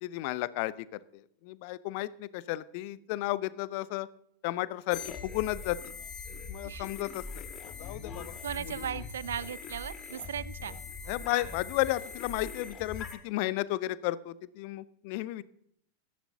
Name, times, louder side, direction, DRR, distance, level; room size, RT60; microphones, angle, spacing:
voice 1, 0.0-4.1 4.4-5.9 6.5-7.5 7.8-8.4 11.1-15.4, left 17 dB, 45° left, 19 dB, 0.6 m, -33 dB
sound 1, 4.9-13.2, left 5 dB, 25° left, 1.8 m, -42 dB
sound 2, 5.6-5.7 6.0-6.1 6.7-7.1 7.7-8.1 8.7-10.1 10.7-11.2 11.7-12.1, right 3 dB, 40° right, 3.8 m, -63 dB
voice 2, 8.4-10.7, right 9 dB, 65° right, 19 dB, 0.4 m, -37 dB
17.5 x 13.5 x 2.8 m, 0.70 s
figure-of-eight pair, 90°, 0 cm